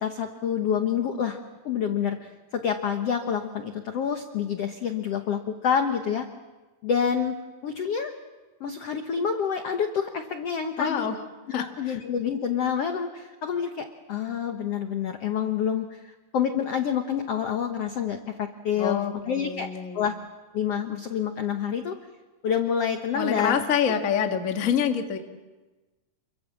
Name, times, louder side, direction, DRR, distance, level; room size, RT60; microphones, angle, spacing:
voice 1, 0.0-1.4 1.6-6.3 6.8-7.4 7.6-8.1 8.6-11.1 11.8-19.7 19.9-20.1 20.5-21.9 22.4-23.6, left 7 dB, 75° left, 6 dB, 1.4 m, -27 dB
voice 2, 10.8-11.2 11.5-12.0 18.8-20.1 23.1-25.2, left 7 dB, 50° left, 4 dB, 0.9 m, -27 dB
28.5 x 23.5 x 7.5 m, 1.2 s
omnidirectional pair, 4.7 m